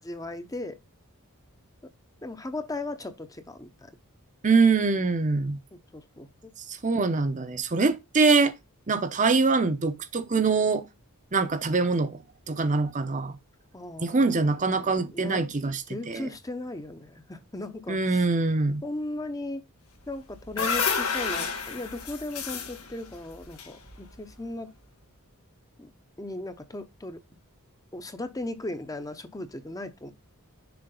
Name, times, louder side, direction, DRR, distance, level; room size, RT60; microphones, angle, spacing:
voice 1, 0.0-0.8 1.8-1.9 2.2-3.9 5.9-6.5 13.7-15.4 15.9-18.2 18.8-19.6 20.1-24.7 25.8-25.9 26.2-27.2 27.9-30.1, left 2 dB, 15° left, 0.7 m, -37 dB
voice 2, 4.4-5.6 6.7-8.5 8.9-10.9 11.3-12.2 12.5-13.4 14.0-16.3 17.9-18.8, right 4 dB, 35° right, 0.7 m, -24 dB
sound 1, 20.1-24.3, left 5 dB, 85° left, 2.1 m, -31 dB
6.9 x 4.3 x 3.8 m
head